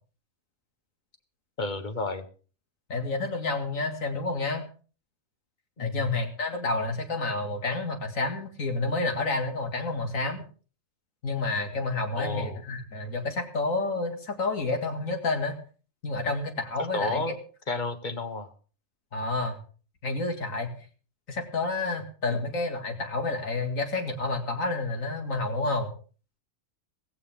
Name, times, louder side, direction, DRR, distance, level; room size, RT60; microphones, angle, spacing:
voice 1, 1.6-2.3 5.8-6.0 12.1-12.6 16.8-17.3 17.7-18.5 22.3-22.4, left 2 dB, 40° left, 9 dB, 1.2 m, -32 dB
voice 2, 2.9-4.6 5.8-10.4 11.2-15.6 16.0-17.3 19.1-19.6 20.0-20.7 21.3-25.9, left 3 dB, 85° left, 5 dB, 2.5 m, -29 dB
16.5 x 15.5 x 3.6 m, 0.39 s
omnidirectional pair, 1.4 m